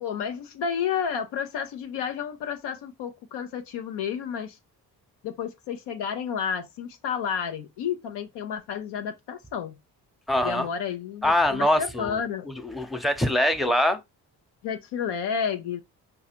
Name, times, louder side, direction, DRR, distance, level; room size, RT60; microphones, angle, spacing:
voice 1, 0.0-4.6 5.2-9.8 10.4-12.5 14.6-15.8, left 7 dB, 80° left, 0.8 m, -31 dB
voice 2, 10.3-10.7 11.2-12.2 12.5-14.0, left 1 dB, ahead, 0.7 m, -23 dB
4.8 x 2.4 x 4.3 m
supercardioid pair, 55°, 40 cm